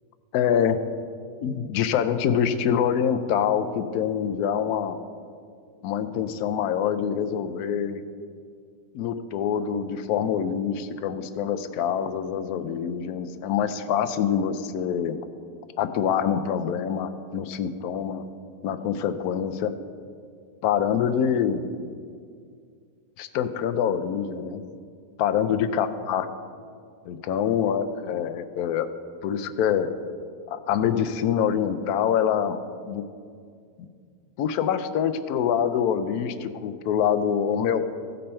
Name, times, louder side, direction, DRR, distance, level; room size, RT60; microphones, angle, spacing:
voice 1, 0.3-0.8 1.4-5.0 5.8-8.0 8.9-15.2 15.8-18.3 18.6-19.7 20.6-21.7 23.2-24.6 25.2-26.3 27.1-28.9 29.2-29.9 30.5-32.6 32.9-33.0 33.8-33.9 34.4-37.9, left 8 dB, 75° left, 10 dB, 1.1 m, -25 dB
16.0 x 5.4 x 4.3 m, 2.2 s
omnidirectional pair, 1.7 m